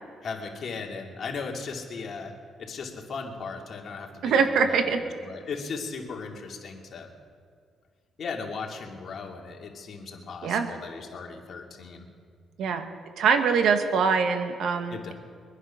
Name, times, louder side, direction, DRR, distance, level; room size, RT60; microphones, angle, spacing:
voice 1, 0.2-7.1 8.2-12.1 14.9-15.1, left 4 dB, 55° left, 1 dB, 2.5 m, -37 dB
voice 2, 4.2-5.0 10.4-10.7 12.6-12.9 13.2-15.1, right 5 dB, 75° right, 7 dB, 1.4 m, -23 dB
23.0 x 10.0 x 5.8 m, 2.1 s
cardioid pair, 90°, 0 cm